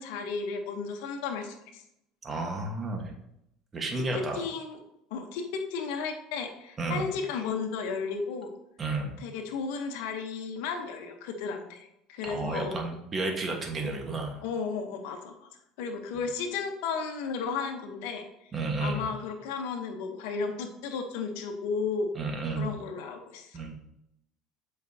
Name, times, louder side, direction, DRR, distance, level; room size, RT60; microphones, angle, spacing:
voice 1, 0.0-1.8 4.1-4.8 5.1-8.5 9.2-12.8 13.8-13.9 14.4-15.5 15.8-18.2 18.8-22.1 22.6-23.6, left 5 dB, 80° left, 4 dB, 1.0 m, -34 dB
voice 2, 2.2-3.1 3.7-4.4 6.8-7.0 8.8-9.2 12.2-14.4 16.1-16.3 18.5-19.1 22.1-22.7 23.5-23.7, right 3 dB, 25° right, 2 dB, 1.4 m, -32 dB
7.5 x 5.2 x 2.8 m, 0.80 s
supercardioid pair, 110°, 0 cm